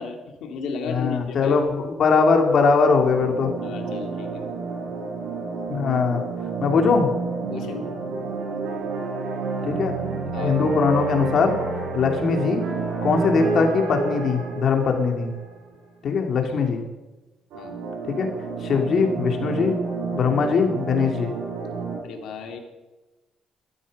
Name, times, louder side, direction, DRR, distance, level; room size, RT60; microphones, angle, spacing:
voice 1, 0.0-1.6 3.6-4.4 7.5-7.8 10.3-10.6 17.5-17.8 22.0-22.6, left 4 dB, 80° left, 4 dB, 2.2 m, -34 dB
voice 2, 0.8-3.5 5.7-6.2 6.6-7.1 9.7-9.9 10.4-11.6 11.9-12.6 13.0-15.3 16.0-16.8 18.1-18.3 18.6-19.7 20.1-21.3, left 5 dB, 60° left, 4 dB, 2.5 m, -21 dB
sound 1, 3.0-15.6 17.5-22.0, right 4 dB, 85° right, 6.0 m, -29 dB
13.0 x 12.5 x 5.3 m, 1.1 s
cardioid pair, 90°, 0 cm